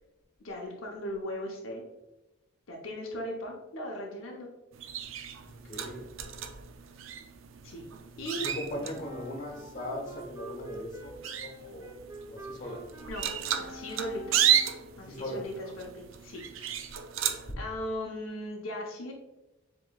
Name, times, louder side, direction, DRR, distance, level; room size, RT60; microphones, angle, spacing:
voice 1, 0.4-1.8 2.7-4.5 7.6-7.9 8.2-8.5 8.8-8.9 12.6-12.7 13.0-14.4 15.0-17.0 17.6-19.1, left 1 dB, 85° left, -1 dB, 0.8 m, -38 dB
sound 1, 4.7-17.5, right 9 dB, 70° right, 0.4 m, -34 dB
voice 2, 5.4-6.1 8.3-12.0 12.3-12.8 15.0-15.5, left 1 dB, 40° left, -1 dB, 1.2 m, -39 dB
Wind instrument woodwind instrument, 8.9-15.0, right 1 dB, 15° right, 0.7 m, -46 dB
7.6 x 3.0 x 2.3 m, 1.0 s
head